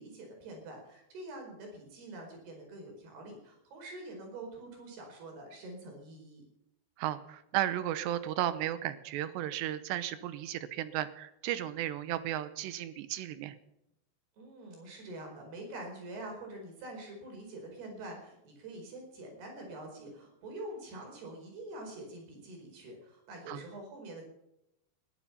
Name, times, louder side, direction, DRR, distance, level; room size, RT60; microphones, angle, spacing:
voice 1, 0.0-6.4 14.4-24.2, right 1 dB, 65° right, 2 dB, 6.7 m, -45 dB
voice 2, 7.0-13.5 23.5-23.6, right 12 dB, 80° right, 13 dB, 3.1 m, -34 dB
21.0 x 12.0 x 5.7 m, 0.84 s
omnidirectional pair, 5.0 m